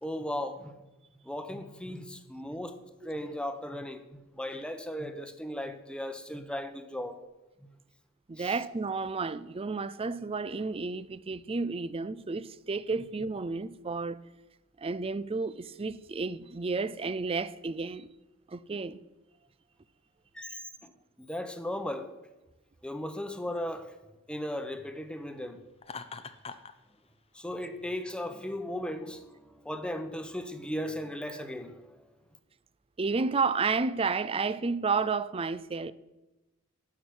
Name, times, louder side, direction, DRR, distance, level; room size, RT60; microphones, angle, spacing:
voice 1, 0.0-0.8 1.2-2.8 3.0-7.2 8.4-8.5 20.3-20.9 21.2-22.1 22.8-23.9 24.3-25.6 27.3-32.0, left 1 dB, 5° left, 1.0 m, -37 dB
voice 2, 8.3-14.2 14.8-18.1 18.5-19.0 33.0-35.9, right 4 dB, 25° right, 0.5 m, -31 dB
Laughter, 25.8-26.8, left 5 dB, 30° left, 0.7 m, -42 dB
13.0 x 6.2 x 9.5 m
head